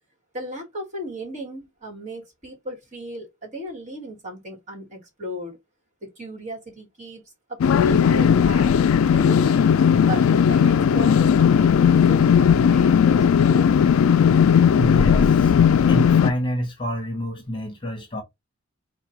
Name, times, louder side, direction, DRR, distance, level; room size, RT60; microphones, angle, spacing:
voice 1, 0.3-5.6 6.0-7.2 7.5-8.7 9.0-9.7 10.1-13.7, left 1 dB, 35° right, 1.8 m, -34 dB
sound 1, 7.6-16.3, left 7 dB, 80° left, 0.3 m, -17 dB
voice 2, 14.7-15.5 15.9-18.2, equal, 25° left, 0.9 m, -27 dB
4.7 x 2.3 x 4.4 m
head